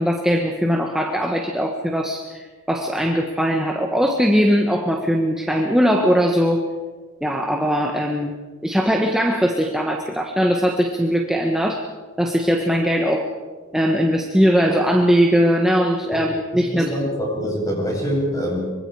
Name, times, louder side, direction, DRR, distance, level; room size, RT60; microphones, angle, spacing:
voice 1, 0.0-6.6 7.2-8.3 8.6-11.8 12.2-13.3 13.7-16.9, equal, 5° right, 1 dB, 1.4 m, -20 dB
voice 2, 16.5-18.6, equal, 20° left, -2 dB, 7.9 m, -25 dB
25.0 x 24.5 x 4.9 m, 1.4 s
head